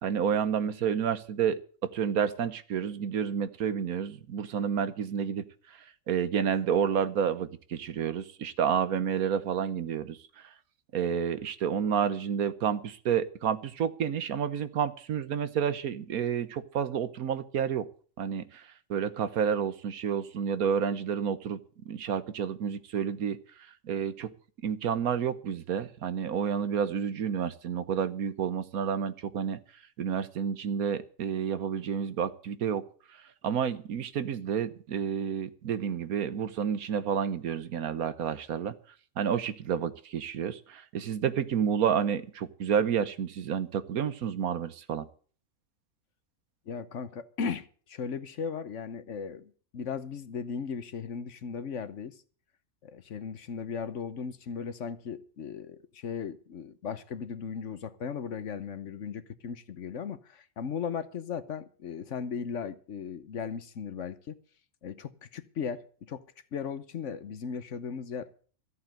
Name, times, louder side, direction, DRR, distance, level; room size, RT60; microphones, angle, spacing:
voice 1, 0.0-5.5 6.1-10.2 10.9-17.9 18.2-18.6 18.9-21.6 21.8-23.4 23.8-24.3 24.6-29.6 30.0-32.8 33.4-38.7 39.2-45.1, right 7 dB, 85° right, 1.5 m, -30 dB
voice 2, 46.7-52.2 52.8-64.4 64.8-66.2 66.5-68.3, left 6 dB, 60° left, 1.2 m, -37 dB
14.0 x 8.1 x 7.6 m
omnidirectional pair, 1.5 m